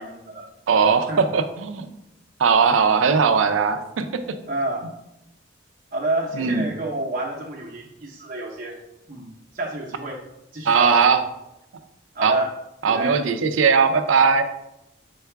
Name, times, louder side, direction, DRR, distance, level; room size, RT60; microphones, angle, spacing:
voice 1, 0.0-0.5 1.1-1.3 4.5-4.9 5.9-8.8 9.1-10.2 10.5-11.0 12.1-12.5 12.8-13.2, right 2 dB, 45° right, -3 dB, 0.6 m, -29 dB
voice 2, 0.7-1.9 2.4-4.4 6.3-6.7 10.7-11.2 12.2-12.3 12.8-14.4, right 5 dB, 90° right, 9 dB, 0.4 m, -19 dB
4.5 x 2.2 x 4.5 m, 0.86 s
head